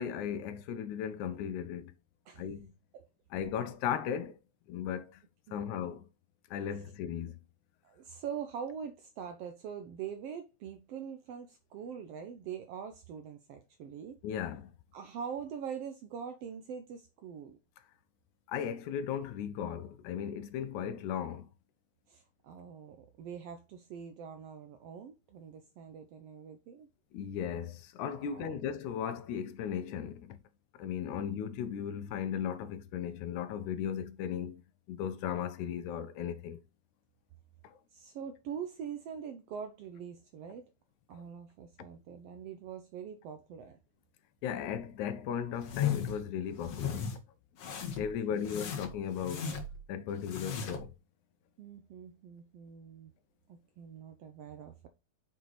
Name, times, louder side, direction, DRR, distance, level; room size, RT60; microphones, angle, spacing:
voice 1, 0.0-1.9 2.4-2.7 3.3-4.4 4.7-5.2 5.5-6.1 6.5-7.4 14.2-14.7 18.5-21.5 27.1-30.4 30.8-34.6 34.9-36.6 37.6-37.8 41.2-41.3 44.4-47.1 48.0-49.5 49.9-51.0, left 8 dB, 80° left, 2.1 m, -36 dB
voice 2, 7.8-14.2 14.9-17.6 22.1-26.9 28.2-28.6 37.9-40.7 41.1-43.8 47.9-48.0 48.3-48.5 51.6-53.1 53.5-54.9, right 7 dB, 75° right, 1.4 m, -43 dB
sound 1, 45.6-46.2 46.6-47.2 47.6-48.1 48.4-49.8 50.2-50.9, left 8 dB, 60° left, 2.3 m, -36 dB
6.3 x 4.6 x 4.0 m
omnidirectional pair, 3.4 m